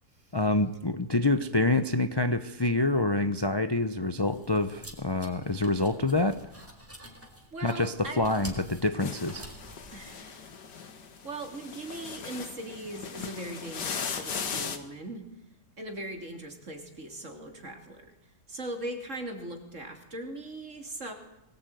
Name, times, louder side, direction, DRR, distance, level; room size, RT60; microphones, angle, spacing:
voice 1, 0.3-6.5 7.6-9.5, left 2 dB, 20° left, 11 dB, 0.7 m, -27 dB
sound 1, 4.2-10.1, right 1 dB, 10° right, 3.8 m, -48 dB
voice 2, 7.5-8.3 9.9-10.5 11.2-15.3 15.8-18.2 18.5-21.1, right 1 dB, 45° right, 5 dB, 3.6 m, -39 dB
sound 2, 9.0-14.8, left 6 dB, 90° left, 2.4 m, -38 dB
23.0 x 19.0 x 9.3 m, 0.88 s
omnidirectional pair, 1.7 m